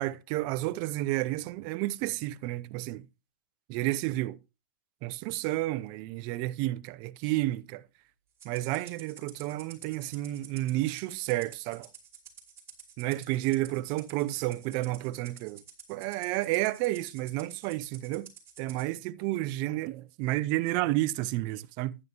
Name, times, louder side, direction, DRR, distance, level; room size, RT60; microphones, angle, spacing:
voice 1, 0.0-3.1 3.7-4.4 5.0-7.8 8.4-11.9 13.0-15.6 15.9-18.3 18.6-22.0, right 17 dB, 40° right, 0.8 m, -31 dB
Rattle (instrument), 8.4-18.9, right 7 dB, 20° right, 5.4 m, -51 dB
15.0 x 11.0 x 3.0 m
hypercardioid pair, 130°, 11 cm